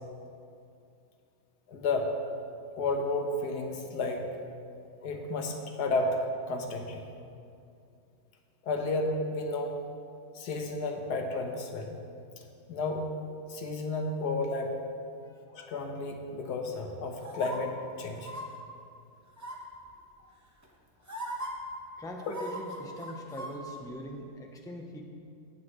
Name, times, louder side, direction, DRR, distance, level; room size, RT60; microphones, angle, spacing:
voice 1, 1.7-2.1 2.8-4.2 5.0-7.1 8.6-9.7 10.3-12.0 12.7-13.1 13.5-14.7 15.5-18.3 22.3-22.4, left 2 dB, 80° left, 3 dB, 1.5 m, -32 dB
sound 1, 17.2-17.6 18.2-18.4 19.4-19.8 20.6-20.7 21.1-21.5 22.2-23.5 23.8-23.9, right 1 dB, 15° right, 0.9 m, -39 dB
voice 2, 22.0-25.0, equal, 5° left, 1 dB, 0.5 m, -42 dB
17.5 x 7.2 x 3.2 m, 2.5 s
omnidirectional pair, 1.7 m